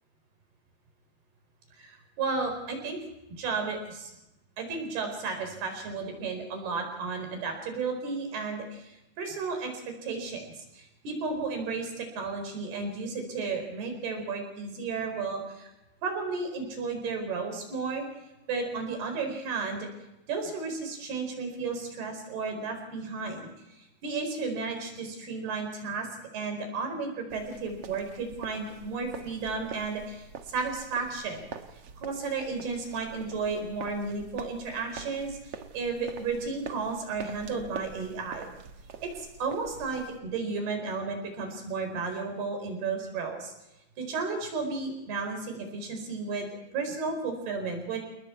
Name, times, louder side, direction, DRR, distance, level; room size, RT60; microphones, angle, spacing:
voice 1, 1.8-3.0 3.4-4.1 4.6-15.7 16.0-18.0 18.5-19.9 20.3-23.5 24.0-26.1 26.3-31.4 32.0-38.5 39.0-43.5 44.0-48.0, right 4 dB, 85° right, 5 dB, 6.6 m, -33 dB
sound 1, 27.3-40.2, right 6 dB, 60° right, 1.6 m, -45 dB
29.5 x 20.0 x 4.6 m, 0.92 s
omnidirectional pair, 4.4 m